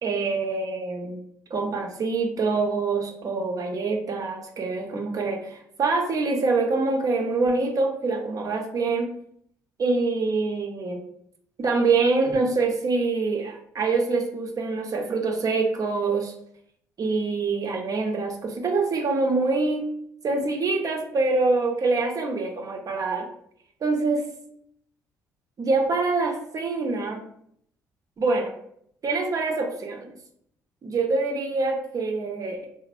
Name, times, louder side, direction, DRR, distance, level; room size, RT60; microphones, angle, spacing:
voice 1, 0.0-1.2 1.5-9.1 9.8-11.0 11.6-16.3 17.0-19.9 20.2-23.3 23.8-24.3 25.6-27.3 28.2-28.6 29.0-30.1 30.8-32.6, right 3 dB, 45° right, 3 dB, 0.6 m, -25 dB
3.0 x 2.0 x 2.5 m, 0.69 s
hypercardioid pair, 55°, 8 cm